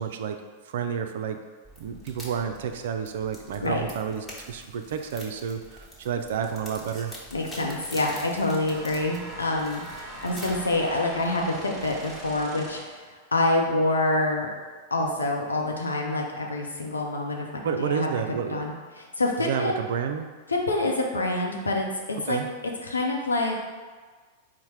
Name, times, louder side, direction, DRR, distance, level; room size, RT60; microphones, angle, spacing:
voice 1, 0.0-1.4 1.8-7.1 17.6-18.6 19.4-20.3 22.2-22.5, right 7 dB, 65° right, 6 dB, 0.3 m, -30 dB
sound 1, 1.6-12.4, equal, 5° left, 1.1 m, -45 dB
voice 2, 7.3-12.8 13.3-14.5 14.9-17.5 17.8-18.1 18.5-19.7 20.5-21.9 22.3-22.4 22.8-23.6, left 2 dB, 85° left, 0 dB, 0.6 m, -26 dB
sound 2, 8.7-13.1, right 2 dB, 25° right, 1.2 m, -41 dB
4.2 x 2.1 x 4.6 m, 1.4 s
figure-of-eight pair, 95°, 0 cm